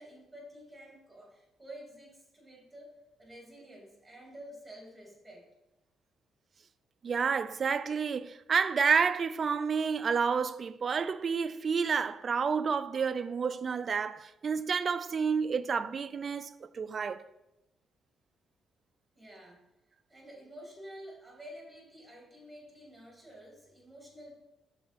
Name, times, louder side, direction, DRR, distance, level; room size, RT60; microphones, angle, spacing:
voice 1, 0.0-5.4 19.1-19.6 20.1-24.4, equal, 10° right, 2.5 m, -50 dB
voice 2, 7.0-17.2, right 6 dB, 45° right, 0.3 m, -30 dB
6.0 x 4.3 x 5.2 m
cardioid pair, 90°, 0 cm